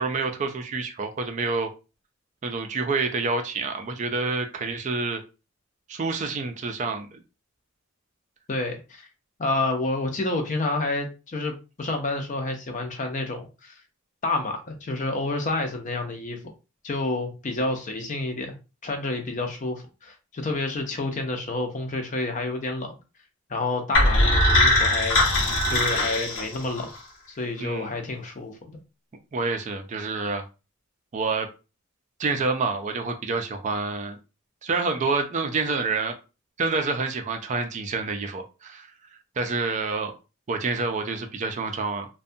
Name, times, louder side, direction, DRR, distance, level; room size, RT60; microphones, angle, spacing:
voice 1, 0.0-1.7 2.4-5.2 5.9-7.2 27.6-27.9 29.3-30.4 31.1-31.5 32.2-34.2 34.6-36.1 36.6-38.9 39.4-40.1 40.5-42.1, right 4 dB, 35° right, 0.3 m, -28 dB
voice 2, 8.5-9.1 9.4-13.7 14.2-16.4 16.8-18.5 18.8-23.0 23.5-25.2 25.7-26.9 27.4-28.8, left 2 dB, 35° left, 0.5 m, -29 dB
sound 1, 23.9-27.0, left 1 dB, 65° left, 0.8 m, -21 dB
2.6 x 2.2 x 2.6 m
head